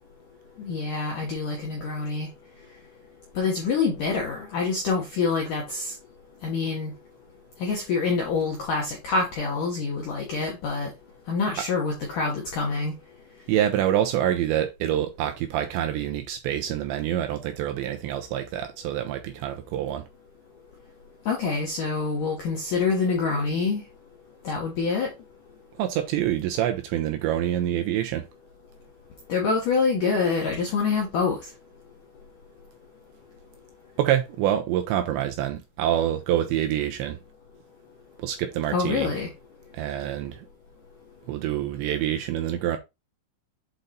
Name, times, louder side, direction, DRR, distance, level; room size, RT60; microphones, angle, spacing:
voice 1, 0.6-2.3 3.4-5.9 6.4-6.9 7.6-10.9 11.3-12.9 21.3-23.8 24.4-25.1 29.3-31.4 38.7-39.3, left 4 dB, 80° left, 1.8 m, -26 dB
voice 2, 13.5-20.0 25.8-28.3 34.0-37.2 38.2-39.1 39.7-40.4 41.3-42.8, right 11 dB, 85° right, 2.7 m, -26 dB
8.0 x 3.9 x 4.0 m
omnidirectional pair, 5.9 m